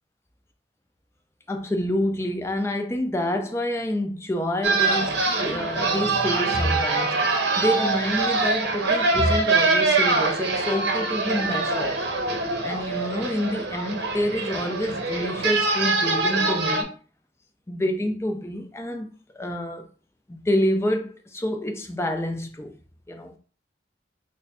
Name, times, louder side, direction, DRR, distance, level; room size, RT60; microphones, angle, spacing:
voice 1, 1.5-12.0 12.6-16.9 17.7-19.1 19.3-19.9 20.3-22.7 23.1-23.3, left 1 dB, 15° left, 0.4 m, -27 dB
sound 1, 4.6-16.8, right 3 dB, 70° right, 0.8 m, -24 dB
3.4 x 2.1 x 4.1 m
head